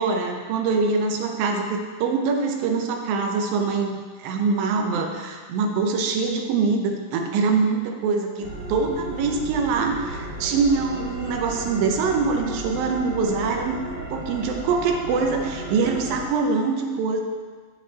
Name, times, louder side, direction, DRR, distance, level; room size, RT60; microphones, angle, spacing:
voice 1, 0.0-13.8 14.1-17.2, right 4 dB, 85° right, 3 dB, 2.6 m, -24 dB
sound 1, 8.4-16.2, right 2 dB, 45° right, 1.4 m, -34 dB
10.0 x 7.3 x 4.0 m, 1.5 s
omnidirectional pair, 4.0 m